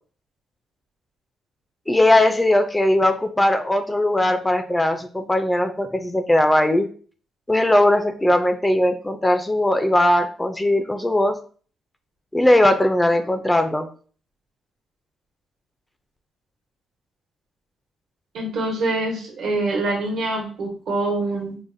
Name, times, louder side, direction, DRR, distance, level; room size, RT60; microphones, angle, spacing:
voice 1, 1.9-6.9 7.5-11.4 12.3-13.9, left 1 dB, 10° left, 7 dB, 0.3 m, -19 dB
voice 2, 18.3-21.6, right 2 dB, 70° right, 1 dB, 1.1 m, -25 dB
4.7 x 2.1 x 2.5 m, 0.42 s
cardioid pair, 90°, 0 cm